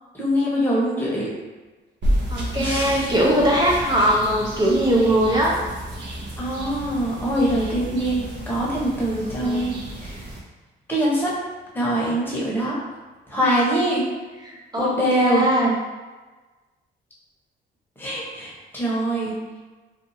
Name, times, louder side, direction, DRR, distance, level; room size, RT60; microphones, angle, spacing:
voice 1, 0.1-1.3 2.6-3.1 6.4-10.2 10.9-11.4 11.7-12.8 13.3-14.0 14.7-15.4 18.0-19.3, right 1 dB, 10° left, -6 dB, 0.9 m, -23 dB
sound 1, 2.0-10.4, equal, 65° right, 0.7 m, -31 dB
voice 2, 2.3-5.5 9.4-9.9 14.5-15.8, equal, 20° right, -4 dB, 0.5 m, -21 dB
2.6 x 2.4 x 2.6 m, 1.2 s
cardioid pair, 90°, 20 cm